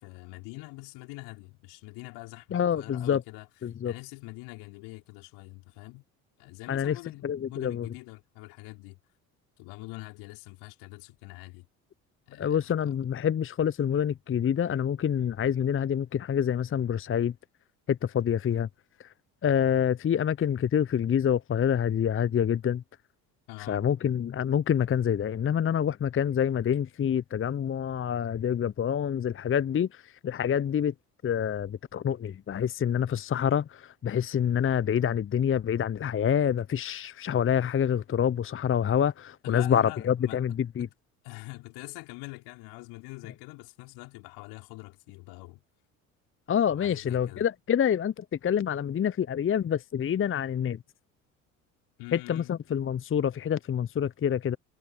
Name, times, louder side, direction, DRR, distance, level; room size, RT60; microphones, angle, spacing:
voice 1, 0.0-3.5 3.8-6.0 6.4-9.0 9.6-11.7 12.3-12.7 23.5-23.8 39.4-40.9 41.2-45.6 46.7-47.4 52.0-52.5, left 24 dB, 60° left, 5.7 m, -44 dB
voice 2, 2.5-3.2 3.6-3.9 6.7-7.0 7.2-7.9 12.4-17.3 17.9-18.7 19.0-19.1 19.4-22.8 23.6-30.9 31.2-40.9 46.5-50.8 52.1-54.6, left 8 dB, 30° left, 1.0 m, -27 dB
figure-of-eight pair, 55°, 43 cm